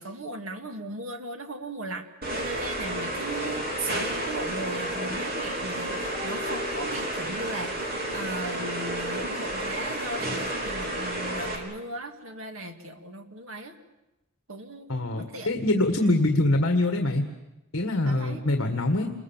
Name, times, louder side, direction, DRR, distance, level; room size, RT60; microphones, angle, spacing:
voice 1, 0.0-13.7 14.5-15.5 16.0-16.2 18.1-18.4, right 2 dB, 70° right, 5 dB, 2.4 m, -37 dB
sound 1, 2.2-11.6, right 1 dB, 45° right, 4.2 m, -31 dB
sound 2, 6.1-7.8 8.1-8.2, left 5 dB, ahead, 3.9 m, -42 dB
voice 2, 14.9-17.2 17.7-19.1, left 2 dB, 60° left, 4 dB, 1.8 m, -24 dB
28.0 x 22.0 x 7.4 m, 0.94 s
head